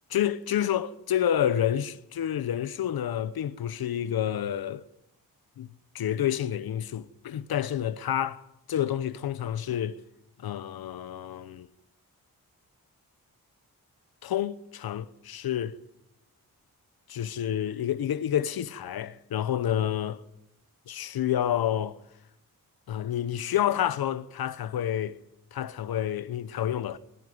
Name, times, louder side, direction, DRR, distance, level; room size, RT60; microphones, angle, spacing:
voice 1, 0.1-4.8 5.6-8.4 8.7-10.0 10.4-11.7 14.2-15.7 17.1-20.2 20.9-22.0 22.9-25.2 25.5-27.0, left 10 dB, 85° left, 1.0 m, -29 dB
20.5 x 14.5 x 9.6 m
cardioid pair, 85°, 36 cm